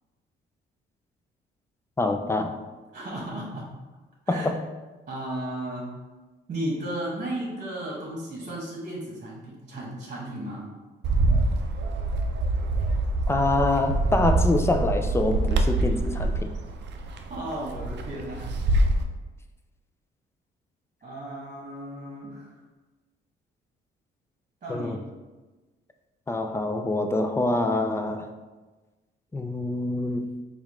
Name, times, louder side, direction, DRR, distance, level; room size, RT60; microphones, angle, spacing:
voice 1, 2.0-2.6 4.3-4.6 13.3-16.5 24.7-25.0 26.3-28.3 29.3-30.3, left 2 dB, 15° left, 5 dB, 0.4 m, -25 dB
voice 2, 2.9-3.7 4.3-4.5 5.1-5.9 6.5-10.7 17.1-18.5 21.0-22.5 24.6-25.0, right 1 dB, 40° right, -3 dB, 1.2 m, -34 dB
Bird, 11.0-19.0, right 2 dB, 60° right, 0.5 m, -25 dB
4.6 x 2.4 x 3.5 m, 1.2 s
cardioid pair, 90°, 20 cm